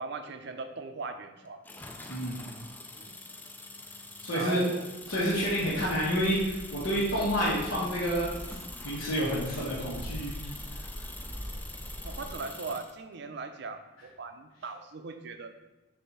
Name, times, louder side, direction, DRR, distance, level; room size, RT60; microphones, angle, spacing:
voice 1, 0.0-1.6 3.0-3.2 4.3-4.9 12.0-15.5, right 3 dB, 60° right, 7 dB, 0.5 m, -39 dB
sound 1, 1.6-13.0, left 2 dB, 10° left, 0.3 m, -45 dB
voice 2, 2.1-2.5 4.2-4.6 5.1-10.3, equal, 85° left, -7 dB, 1.4 m, -29 dB
Bird, 5.1-12.3, equal, 15° right, 0.7 m, -43 dB
6.8 x 2.7 x 5.5 m, 1.0 s
head